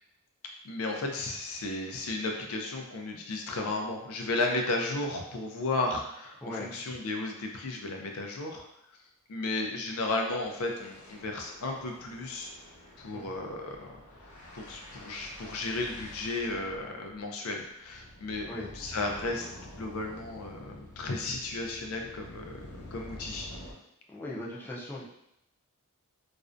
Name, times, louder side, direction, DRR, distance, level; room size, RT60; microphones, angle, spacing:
voice 1, 0.6-8.6 9.3-12.5 13.0-13.9 14.5-18.5 18.7-22.5 22.8-23.5, left 2 dB, 70° left, 2 dB, 0.4 m, -34 dB
voice 2, 6.4-6.8 13.1-13.3 18.5-18.7 24.1-25.0, left 1 dB, 10° left, -6 dB, 0.4 m, -39 dB
sound 1, 7.0-7.2 7.5-7.6 7.9-8.1 8.4-8.5 9.9-23.7, left 1 dB, 85° left, 0.9 m, -48 dB
2.4 x 2.1 x 2.5 m, 0.80 s
head